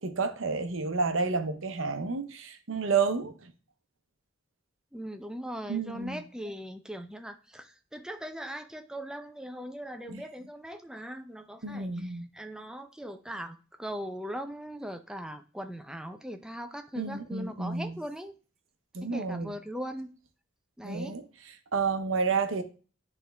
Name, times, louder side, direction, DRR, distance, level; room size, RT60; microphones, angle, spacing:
voice 1, 0.0-3.3 5.7-6.2 10.1-10.2 11.6-12.3 17.0-18.0 18.9-19.5 20.8-21.2 21.7-22.6, right 4 dB, 85° right, 0.8 m, -30 dB
voice 2, 4.9-18.3 19.0-20.1 20.8-21.2, equal, 5° right, 0.5 m, -40 dB
10.0 x 3.6 x 3.4 m
head